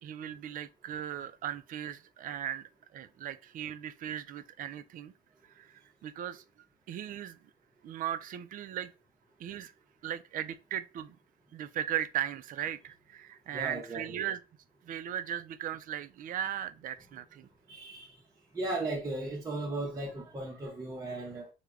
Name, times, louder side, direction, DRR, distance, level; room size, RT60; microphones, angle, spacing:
voice 1, 0.0-5.1 5.6-6.4 6.9-7.4 7.8-8.9 9.4-9.7 10.0-11.2 11.5-14.4 14.8-17.5, right 10 dB, 55° right, 0.4 m, -37 dB
voice 2, 13.5-14.2 17.7-18.2 18.5-21.5, right 2 dB, 20° right, 0.7 m, -36 dB
3.3 x 2.1 x 3.5 m
cardioid pair, 110°, 17 cm